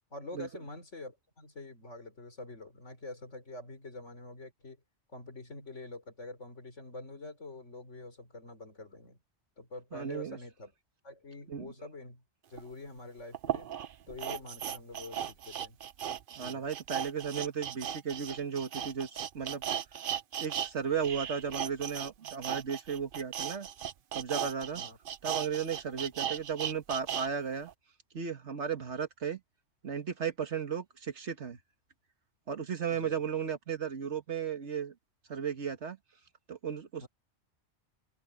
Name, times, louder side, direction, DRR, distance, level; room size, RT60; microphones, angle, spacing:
voice 1, 0.1-4.8 5.1-9.2 9.6-10.7 11.0-12.2 12.5-13.7 14.1-15.8 16.4-16.7 24.7-25.0 25.9-26.0 32.9-33.2 37.0-37.1, left 2 dB, 85° left, 4.3 m, -46 dB
voice 2, 9.9-10.4 11.5-11.7 16.4-19.6 20.4-23.7 24.1-24.8 25.2-27.7 28.1-29.4 29.8-31.6 32.5-34.9 35.3-36.0 36.5-37.1, right 7 dB, 75° right, 1.8 m, -35 dB
sound 1, 12.6-12.7 13.3-20.7 21.0-27.3 27.7-27.8, right 9 dB, 55° right, 0.8 m, -37 dB
open air
omnidirectional pair, 1.2 m